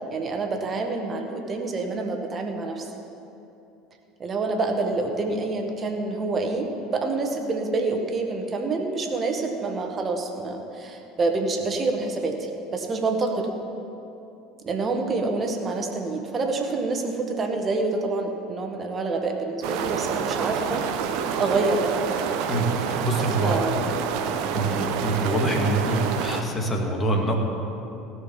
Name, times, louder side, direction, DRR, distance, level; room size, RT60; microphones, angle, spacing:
voice 1, 0.1-2.9 4.2-13.5 14.6-20.8 21.4-21.9 23.4-24.0 24.5-24.8, right 3 dB, 35° right, 3 dB, 1.7 m, -27 dB
sound 1, 19.6-26.4, right 7 dB, 60° right, 0.8 m, -28 dB
voice 2, 22.5-23.6 24.5-27.3, right 1 dB, 25° left, 1 dB, 2.3 m, -25 dB
16.5 x 6.4 x 7.4 m, 2.9 s
figure-of-eight pair, 70°, 0 cm